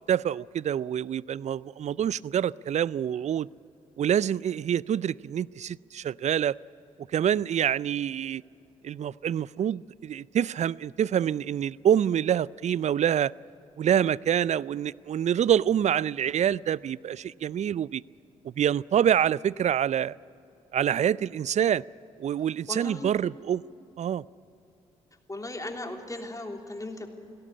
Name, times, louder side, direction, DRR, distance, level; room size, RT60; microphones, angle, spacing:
voice 1, 0.1-3.5 4.0-6.6 7.1-8.4 8.8-13.3 13.8-18.0 18.4-20.1 20.7-21.8 22.2-23.6 24.0-24.2, right 9 dB, 45° right, 23 dB, 0.4 m, -26 dB
voice 2, 22.7-23.1 25.3-27.1, left 2 dB, 20° left, 2 dB, 3.2 m, -37 dB
20.0 x 17.0 x 9.9 m, 2.9 s
hypercardioid pair, 40°, 17 cm